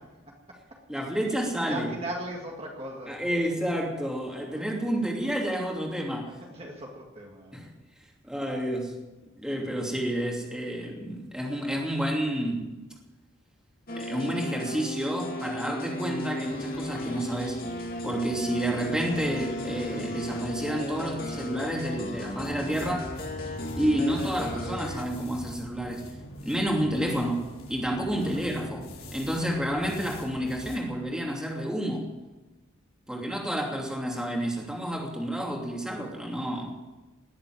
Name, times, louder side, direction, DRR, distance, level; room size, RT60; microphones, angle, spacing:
voice 1, 0.9-1.9 3.1-6.3 7.5-7.7 8.3-8.9 9.4-12.7 14.0-17.6 18.0-23.1 23.8-26.1 26.4-32.1 33.1-36.8, equal, 5° right, -1 dB, 2.8 m, -30 dB
voice 2, 1.5-3.2 4.5-4.6 6.5-7.7 28.3-28.4 33.1-33.4, right 1 dB, 30° right, -1 dB, 2.1 m, -38 dB
sound 1, 13.9-25.0, equal, 45° left, 2.2 m, -35 dB
sound 2, 16.4-24.8, left 1 dB, 65° left, 5.6 m, -46 dB
sound 3, 22.4-30.8, equal, 80° left, 4.0 m, -42 dB
19.5 x 7.7 x 9.4 m, 1.1 s
head